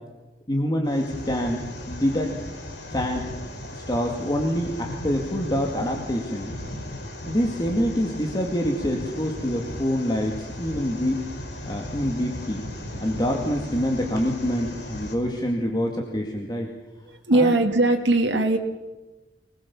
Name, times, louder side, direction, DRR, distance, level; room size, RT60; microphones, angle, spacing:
voice 1, 0.5-2.3 2.9-3.3 3.7-6.5 7.3-11.2 11.7-12.7 13.0-16.7 17.3-17.5, equal, 25° left, 1 dB, 2.3 m, -26 dB
sound 1, 0.8-15.1, left 1 dB, 70° left, 5.0 m, -36 dB
voice 2, 17.1-18.6, right 2 dB, 80° right, 3 dB, 2.1 m, -20 dB
25.0 x 20.5 x 7.3 m, 1.1 s
head